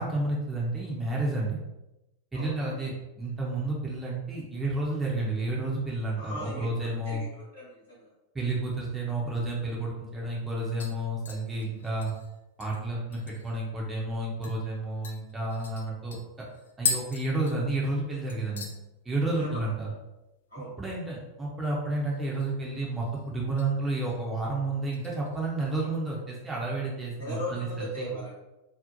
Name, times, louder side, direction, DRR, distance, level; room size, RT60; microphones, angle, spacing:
voice 1, 0.0-1.6 2.3-7.2 8.3-12.1 12.6-16.2 16.8-18.7 19.0-19.9 20.8-28.1, right 2 dB, 15° right, -4 dB, 0.5 m, -31 dB
voice 2, 6.2-8.1 19.3-19.5 20.5-20.7 26.9-28.3, equal, 90° right, -9 dB, 1.1 m, -39 dB
sound 1, 9.7-9.8 10.2-10.5 10.8-13.6 14.0-14.1 14.4-14.6 15.0-18.0 18.3-18.8 19.1-19.5 19.8-19.9 22.0-22.6 23.0-23.7 24.1-24.4 24.9-25.8 26.2-26.3, left 5 dB, 65° left, 0.3 m, -38 dB
2.7 x 2.0 x 2.5 m, 0.97 s
figure-of-eight pair, 90°, 0 cm